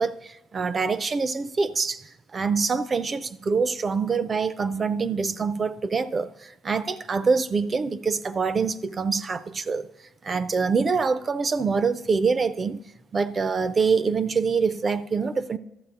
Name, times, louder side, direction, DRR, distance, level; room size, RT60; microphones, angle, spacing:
voice 1, 0.0-9.9 10.2-12.8 13.1-15.6, right 5 dB, 25° right, 0.4 m, -25 dB
12.0 x 8.1 x 3.6 m
cardioid pair, 155°, 0 cm